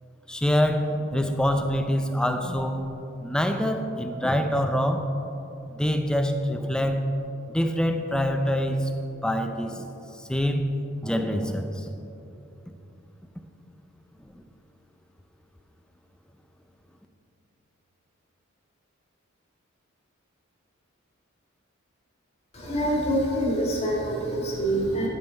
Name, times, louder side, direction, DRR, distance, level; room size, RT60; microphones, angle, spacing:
voice 1, 0.3-2.8 3.2-5.0 5.7-7.1 7.5-8.9 9.2-9.9 10.2-10.7 11.0-11.9 14.3-14.4, equal, 5° left, 5 dB, 0.4 m, -25 dB
voice 2, 22.5-25.1, right 1 dB, 30° left, -4 dB, 1.9 m, -25 dB
10.5 x 6.1 x 4.5 m, 2.9 s
head